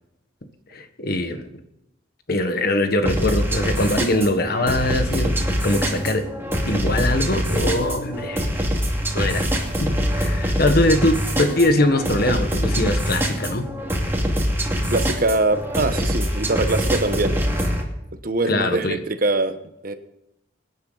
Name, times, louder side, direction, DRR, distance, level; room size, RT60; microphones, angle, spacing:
voice 1, 0.7-1.5 2.3-6.3 6.7-8.5 9.1-9.5 9.8-13.7 18.5-19.0, left 1 dB, 55° left, 1.5 m, -22 dB
sound 1, 3.1-17.8, equal, 15° right, 2.5 m, -24 dB
voice 2, 14.9-17.4 18.2-19.6 19.8-20.0, right 2 dB, 50° right, 1.2 m, -23 dB
24.5 x 10.0 x 4.1 m
head